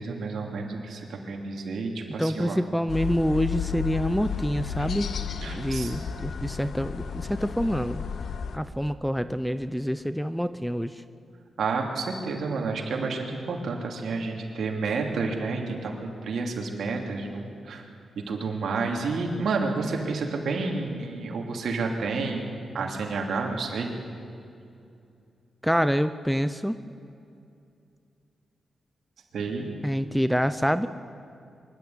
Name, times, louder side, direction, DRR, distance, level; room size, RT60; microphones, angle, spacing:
voice 1, 0.0-2.6 5.4-6.0 11.6-17.9 18.3-23.9 29.3-29.6, right 4 dB, 75° right, 1 dB, 3.0 m, -30 dB
voice 2, 2.2-5.1 5.5-8.1 8.5-11.0 25.6-26.8 29.8-30.9, equal, ahead, 11 dB, 0.5 m, -26 dB
sound 1, 2.9-8.6, left 7 dB, 70° left, 1.0 m, -33 dB
24.0 x 12.0 x 9.4 m, 2.6 s
cardioid pair, 90°, 0 cm